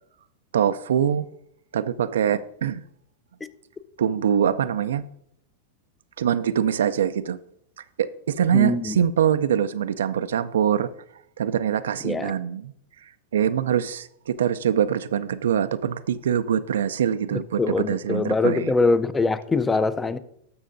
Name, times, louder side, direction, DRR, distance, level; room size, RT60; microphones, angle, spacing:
voice 1, 0.5-1.3 1.7-2.8 4.0-5.1 6.2-7.4 8.0-10.9 11.4-12.7 13.3-18.7, right 9 dB, 85° right, 0.4 m, -23 dB
voice 2, 8.5-9.0 12.0-12.3 17.3-20.2, left 3 dB, 15° left, 0.4 m, -23 dB
12.5 x 6.3 x 2.6 m
hypercardioid pair, 120°, 0 cm